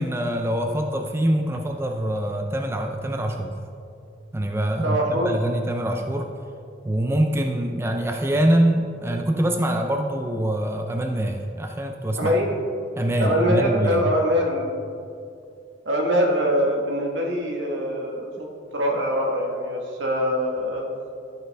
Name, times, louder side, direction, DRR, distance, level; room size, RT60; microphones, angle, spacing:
voice 1, 0.0-3.6 4.3-6.3 6.8-12.3 13.0-14.0, right 1 dB, 15° right, 3 dB, 0.4 m, -24 dB
voice 2, 4.8-5.4 12.2-12.5 13.2-14.7 15.8-18.5 18.7-20.9, equal, 80° right, 1 dB, 1.4 m, -23 dB
12.5 x 5.8 x 3.4 m, 2.4 s
head